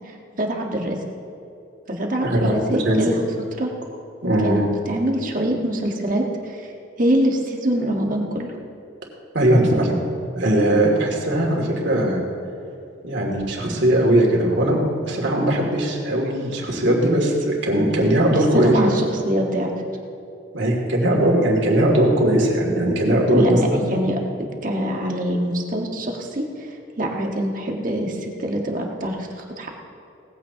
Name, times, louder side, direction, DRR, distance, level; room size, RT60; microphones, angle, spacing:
voice 1, 0.3-1.0 1.9-3.2 3.6-3.7 4.4-4.6 4.9-6.6 7.0-8.5 18.3-19.7 23.3-24.2 24.6-26.4 27.0-29.2 29.5-29.7, right 1 dB, 45° right, 0 dB, 1.6 m, -24 dB
voice 2, 2.2-3.1 4.2-4.6 9.3-10.0 10.3-12.2 13.0-14.8 15.0-19.0 20.5-23.8, right 1 dB, 70° right, -1 dB, 2.7 m, -19 dB
19.0 x 15.0 x 2.9 m, 2.7 s
head